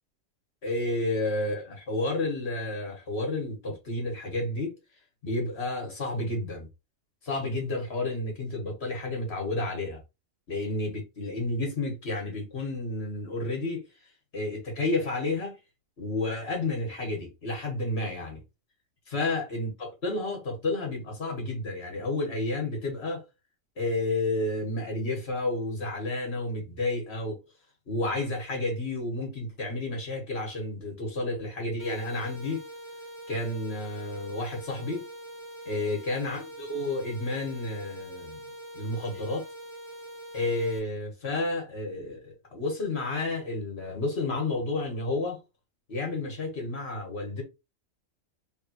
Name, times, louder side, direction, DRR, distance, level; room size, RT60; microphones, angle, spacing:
voice 1, 0.6-4.8 5.2-6.7 7.2-10.0 10.5-13.8 14.3-15.6 16.0-18.4 19.1-23.2 23.8-27.4 27.9-32.6 33.3-35.0 35.7-38.4 38.7-39.5 40.3-45.4 45.9-47.4, left 2 dB, 55° left, 1.9 m, -31 dB
sound 1, 31.8-40.8, right 1 dB, 15° left, 1.1 m, -44 dB
3.8 x 3.4 x 3.0 m
omnidirectional pair, 1.3 m